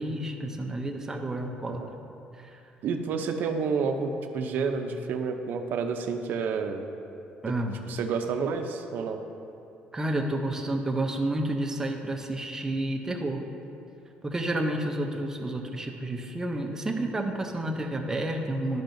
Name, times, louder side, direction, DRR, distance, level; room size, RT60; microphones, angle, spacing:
voice 1, 0.0-1.8 2.4-2.5 7.4-7.8 9.9-13.4 14.2-18.8, right 1 dB, 15° right, 3 dB, 0.7 m, -30 dB
voice 2, 2.8-6.9 7.9-9.2, right 5 dB, 65° right, 5 dB, 0.6 m, -29 dB
12.0 x 5.5 x 2.6 m, 2.9 s
cardioid pair, 130°, 3 cm